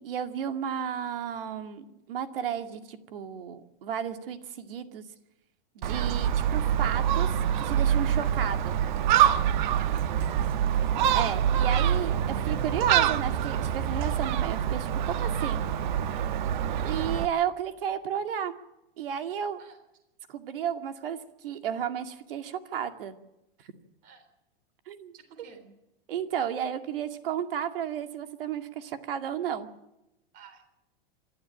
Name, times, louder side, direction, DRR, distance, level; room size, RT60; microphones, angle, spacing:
voice 1, 0.0-5.0 5.8-8.8 11.1-15.6 16.1-16.2 16.8-18.5 19.0-19.6 20.3-21.2 21.4-23.1 24.9-25.5 26.1-29.7, right 9 dB, 70° right, 7 dB, 2.3 m, -33 dB
Gull seagull, 5.8-17.3, right 9 dB, 55° right, 1.1 m, -25 dB
voice 2, 9.7-10.8 14.3-14.4 19.6-19.8 24.0-24.3 25.1-25.7 30.3-30.6, right 6 dB, 30° right, 9 dB, 3.6 m, -53 dB
26.0 x 12.5 x 9.1 m, 0.92 s
supercardioid pair, 170°, 29 cm